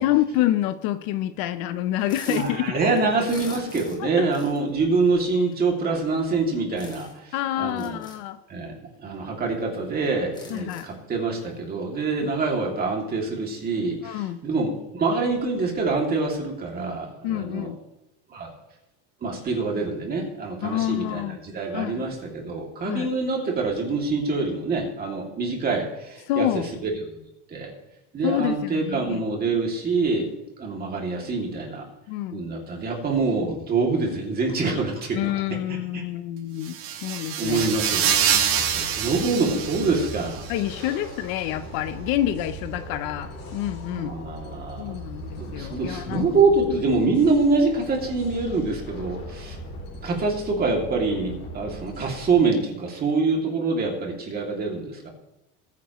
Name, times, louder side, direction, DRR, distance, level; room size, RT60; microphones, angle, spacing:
voice 1, 0.0-2.7 3.5-3.6 4.0-4.3 7.3-8.4 10.5-10.9 12.2-12.3 14.0-14.4 17.2-17.8 20.6-21.4 21.7-22.0 22.8-23.1 26.3-26.7 28.2-29.2 32.1-32.4 35.1-36.8 37.0-37.7 40.5-44.1 44.8-46.3 46.7-46.8, left 13 dB, 60° left, 11 dB, 0.8 m, -27 dB
sound 1, 2.0-2.6 2.9-4.0 4.3-4.6 5.5-5.6 6.8-7.2 7.7-8.2 9.1-9.2 9.5-9.6 10.1-11.0, left 3 dB, 10° left, 2.0 m, -44 dB
voice 2, 2.3-8.0 8.5-17.7 18.3-18.5 19.2-26.9 27.5-27.7 28.1-31.9 32.3-35.3 35.7-36.0 37.4-38.1 38.5-40.4 40.8-40.9 43.9-45.0 45.4-49.6 50.0-55.1, right 3 dB, 25° right, 0 dB, 2.6 m, -25 dB
sound 2, 36.6-40.5, right 8 dB, 55° right, 2.0 m, -25 dB
sound 3, 37.4-52.4, equal, 25° left, 3.4 m, -39 dB
20.5 x 9.7 x 3.1 m, 0.92 s
cardioid pair, 160°, 38 cm